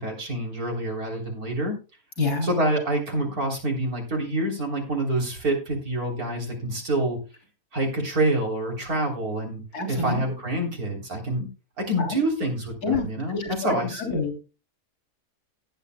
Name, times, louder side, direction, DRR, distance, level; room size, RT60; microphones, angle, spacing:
voice 1, 0.0-1.8 2.4-7.2 7.7-9.6 9.9-11.5 11.8-14.2, right 1 dB, 70° right, 1 dB, 4.1 m, -27 dB
voice 2, 2.2-2.5 9.7-10.3 12.0-12.2 12.8-14.4, left 3 dB, 80° left, 4 dB, 3.7 m, -28 dB
18.5 x 8.4 x 2.3 m, 0.31 s
omnidirectional pair, 1.6 m